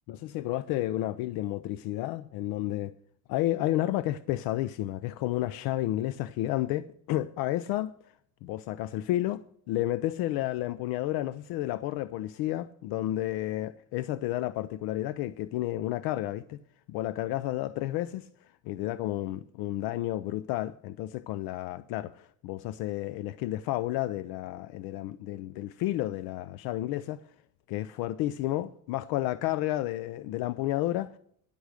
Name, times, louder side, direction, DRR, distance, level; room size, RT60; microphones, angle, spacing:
voice 1, 0.1-2.9 3.3-7.9 8.4-16.6 16.9-18.3 18.6-27.2 27.7-31.1, left 15 dB, 70° left, 0.5 m, -31 dB
10.5 x 8.1 x 6.5 m
cardioid pair, 160°, 38 cm